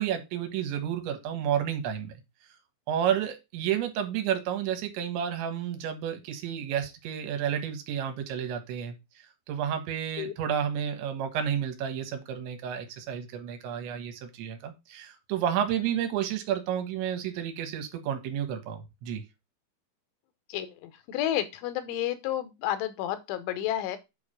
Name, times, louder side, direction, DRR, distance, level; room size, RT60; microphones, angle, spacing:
voice 1, 0.0-2.1 2.9-9.0 9.5-19.2, right 9 dB, 75° right, 7 dB, 3.5 m, -31 dB
voice 2, 20.5-24.0, left 12 dB, 85° left, 11 dB, 3.3 m, -31 dB
8.4 x 4.9 x 4.9 m, 0.24 s
omnidirectional pair, 5.6 m